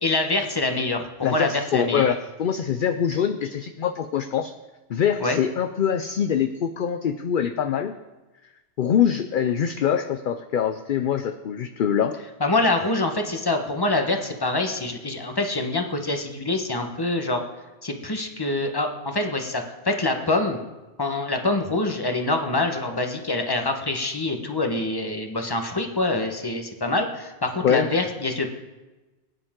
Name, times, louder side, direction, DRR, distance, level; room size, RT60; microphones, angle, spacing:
voice 1, 0.0-2.0 5.2-5.4 12.4-17.4 17.8-20.6 21.0-28.5, left 2 dB, 20° left, 4 dB, 1.2 m, -25 dB
voice 2, 1.2-4.5 4.9-7.9 8.8-12.2 27.6-27.9, left 8 dB, 55° left, 9 dB, 0.6 m, -24 dB
20.0 x 9.8 x 3.7 m, 1.1 s
omnidirectional pair, 1.2 m